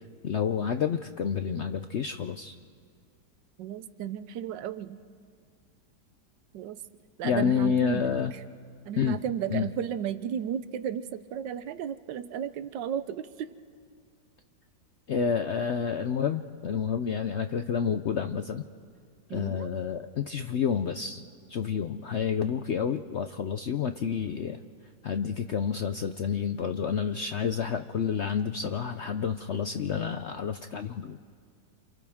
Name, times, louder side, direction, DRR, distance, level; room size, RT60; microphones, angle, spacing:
voice 1, 0.2-2.6 7.2-8.3 9.0-9.2 9.5-9.7 15.1-18.6 19.3-21.2 21.5-24.6 25.0-31.2, left 7 dB, 65° left, 8 dB, 0.7 m, -29 dB
voice 2, 3.6-5.0 6.5-6.8 7.2-8.1 8.9-13.5 19.3-19.7, right 9 dB, 85° right, 12 dB, 1.4 m, -34 dB
29.5 x 28.0 x 3.6 m, 2.1 s
omnidirectional pair, 1.9 m